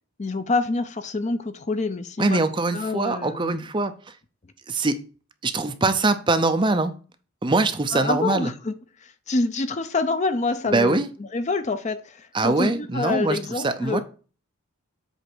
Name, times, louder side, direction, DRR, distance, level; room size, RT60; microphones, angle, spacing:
voice 1, 0.2-2.4 2.7-3.6 7.9-8.7 9.0-14.0, left 3 dB, 30° left, 0.5 m, -27 dB
voice 2, 2.2-3.9 4.7-5.0 5.4-6.9 7.4-8.5 10.7-11.1 12.3-14.0, right 3 dB, 20° right, 0.5 m, -23 dB
8.0 x 3.4 x 6.1 m
head